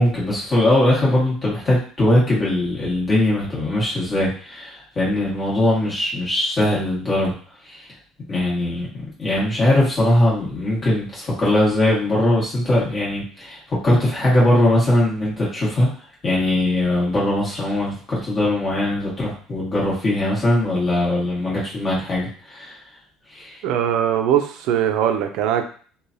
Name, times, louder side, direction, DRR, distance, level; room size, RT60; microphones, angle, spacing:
voice 1, 0.0-7.3 7.7-7.8 8.3-8.9 9.2-15.9 16.2-22.8 23.3-23.5, left 1 dB, 25° left, -6 dB, 1.3 m, -20 dB
voice 2, 23.6-25.6, right 9 dB, 60° right, 7 dB, 0.4 m, -20 dB
3.1 x 2.2 x 2.6 m, 0.43 s
cardioid pair, 165°, 0 cm